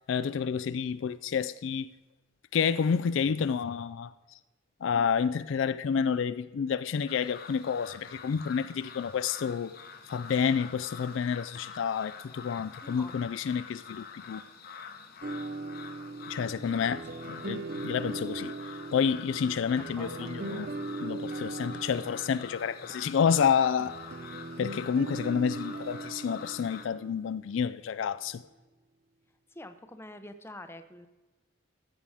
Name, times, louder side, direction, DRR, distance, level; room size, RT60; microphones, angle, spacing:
voice 1, 0.1-1.9 2.5-4.1 4.8-9.7 10.1-14.4 16.3-18.5 18.9-20.7 21.0-24.0 24.6-28.4, left 7 dB, 65° left, 0.3 m, -29 dB
sound 1, 7.1-26.9, left 5 dB, 50° left, 0.9 m, -46 dB
voice 2, 12.8-13.2 19.5-20.3 29.5-31.1, left 1 dB, 10° left, 0.6 m, -46 dB
sound 2, 15.2-27.7, right 2 dB, 50° right, 0.6 m, -40 dB
14.0 x 7.6 x 4.8 m
head